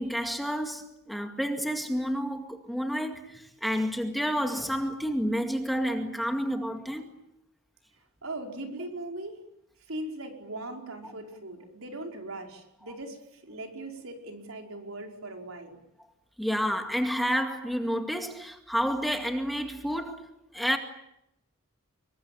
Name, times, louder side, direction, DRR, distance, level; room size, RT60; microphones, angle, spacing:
voice 1, 0.0-7.1 16.4-20.3 20.5-20.8, equal, ahead, 2.1 m, -30 dB
voice 2, 8.2-9.4 9.9-15.8, right 2 dB, 70° right, 5.2 m, -39 dB
26.5 x 23.0 x 8.8 m
head